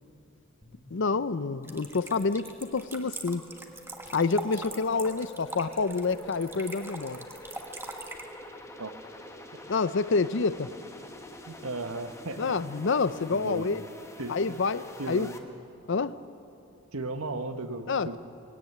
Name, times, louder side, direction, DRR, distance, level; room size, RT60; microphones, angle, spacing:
sound 1, 0.6-15.4, left 1 dB, 15° left, 1.2 m, -47 dB
voice 1, 0.9-3.5 4.1-7.3 9.7-10.7 12.4-13.9 14.3-15.3 15.9-16.2 17.9-18.2, left 4 dB, 55° left, 15 dB, 0.6 m, -28 dB
sound 2, 1.6-8.2, right 2 dB, 10° right, 1.4 m, -41 dB
voice 2, 11.5-12.4 13.3-13.7 14.2-14.6 15.0-15.3 16.9-18.2, right 2 dB, 85° right, 8 dB, 1.2 m, -35 dB
19.5 x 17.0 x 9.3 m, 2.6 s
head